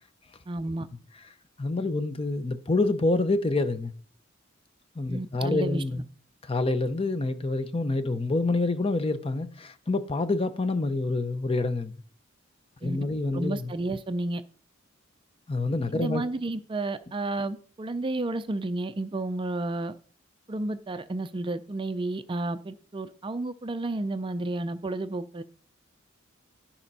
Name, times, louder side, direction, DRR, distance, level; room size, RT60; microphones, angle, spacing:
voice 1, 0.5-0.9 5.1-5.8 12.8-13.0 13.3-14.4 15.9-20.0 20.5-25.4, right 2 dB, 25° right, 0.4 m, -31 dB
voice 2, 1.6-3.9 5.0-6.0 6.5-11.9 12.8-13.7 15.5-16.2, left 2 dB, 30° left, 0.7 m, -27 dB
12.5 x 4.3 x 5.4 m
head